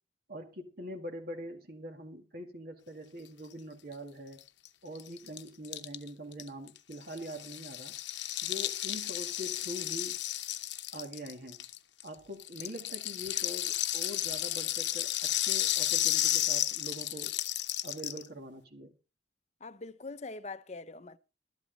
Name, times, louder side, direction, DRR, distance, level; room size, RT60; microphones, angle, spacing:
voice 1, 0.3-4.4 4.8-8.0 8.4-10.2 10.9-11.6 12.0-17.4 17.8-18.9, equal, 55° right, 2.0 m, -43 dB
Rattle (instrument), 4.4-4.5 4.6-4.7 4.9-12.1 12.4-18.3, left 13 dB, 75° left, 0.9 m, -33 dB
voice 2, 19.6-21.2, left 3 dB, 35° left, 0.7 m, -43 dB
12.5 x 11.5 x 3.9 m
head